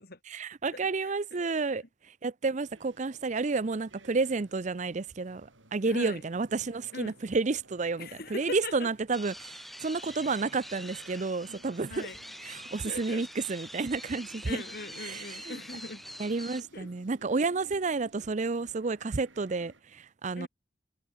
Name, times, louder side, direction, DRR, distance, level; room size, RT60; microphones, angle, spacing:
voice 1, 0.3-12.1 12.4-14.6 15.0-15.5 16.2-20.5, right 4 dB, 40° right, 0.5 m, -31 dB
voice 2, 1.0-1.4 5.9-6.2 6.9-7.1 8.0-8.9 11.9-12.2 12.8-13.3 14.5-16.0 16.6-16.9 20.4-20.5, left 2 dB, 50° left, 2.8 m, -41 dB
sound 1, 2.6-19.8, right 2 dB, 85° right, 7.8 m, -57 dB
sound 2, 9.1-16.6, equal, ahead, 1.3 m, -45 dB
head